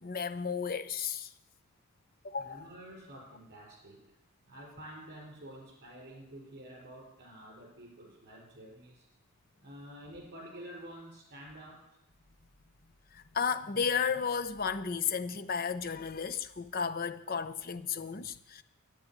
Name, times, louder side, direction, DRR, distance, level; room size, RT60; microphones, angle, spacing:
voice 1, 0.0-1.3 2.2-2.6 13.1-18.6, left 6 dB, 40° left, 0.7 m, -33 dB
voice 2, 2.3-4.1 4.4-9.1 9.6-11.9, right 1 dB, 50° right, 4.6 m, -49 dB
10.5 x 9.5 x 9.9 m
head